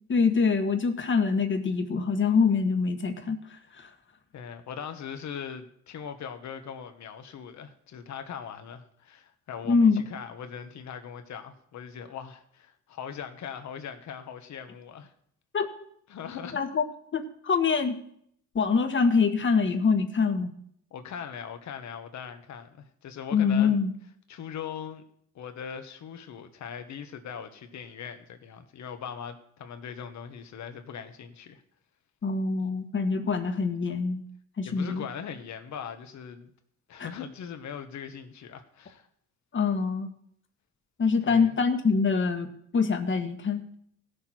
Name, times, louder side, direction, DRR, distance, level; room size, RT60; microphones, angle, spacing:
voice 1, 0.1-3.4 3.8-3.9 9.7-10.0 15.5-15.7 16.5-16.8 17.1-17.9 18.5-20.5 23.3-23.9 32.2-34.2 34.6-35.0 39.5-40.1 41.0-43.6, left 5 dB, 40° left, 6 dB, 1.6 m, -24 dB
voice 2, 4.3-15.1 16.1-16.6 20.9-23.8 24.3-25.0 25.3-31.6 34.6-36.5 36.9-39.1 41.2-41.6, left 7 dB, 65° left, 8 dB, 1.4 m, -40 dB
17.0 x 6.7 x 4.5 m, 0.68 s
cardioid pair, 90°, 30 cm